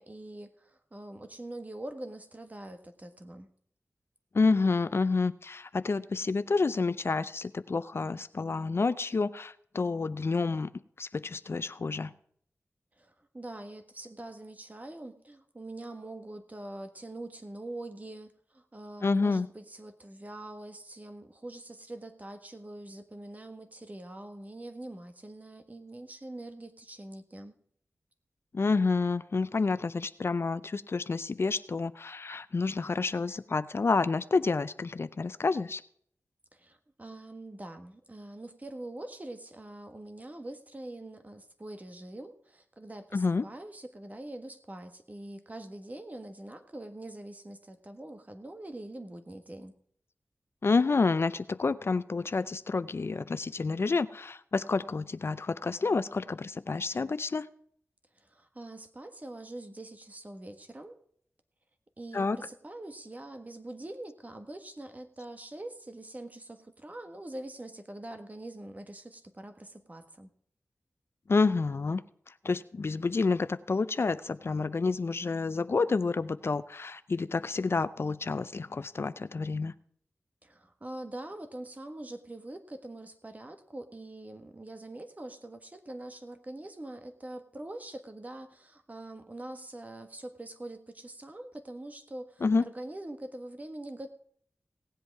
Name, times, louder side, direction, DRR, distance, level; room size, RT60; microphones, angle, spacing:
voice 1, 0.0-3.5 13.0-27.5 36.5-49.7 58.2-61.0 62.0-70.3 80.4-94.1, right 1 dB, 30° right, 7 dB, 1.5 m, -44 dB
voice 2, 4.3-10.7 11.0-12.1 19.0-19.5 28.5-35.8 43.1-43.4 50.6-57.5 62.1-62.4 71.3-72.0 72.4-79.7 92.4-92.6, left 4 dB, 55° left, 14 dB, 0.5 m, -29 dB
17.5 x 8.0 x 4.7 m, 0.63 s
cardioid pair, 55°, 5 cm